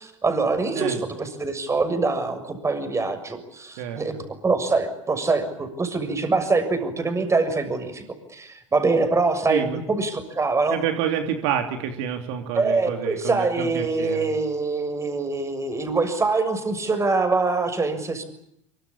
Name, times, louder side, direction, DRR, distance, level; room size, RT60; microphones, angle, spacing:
voice 1, 0.0-4.1 4.4-8.0 8.3-10.8 12.5-18.2, right 3 dB, 20° right, 9 dB, 6.7 m, -24 dB
voice 2, 3.8-4.2 9.5-9.8 10.7-14.3, right 9 dB, 60° right, 5 dB, 3.2 m, -28 dB
25.5 x 24.5 x 8.6 m, 0.78 s
hypercardioid pair, 90°, 16 cm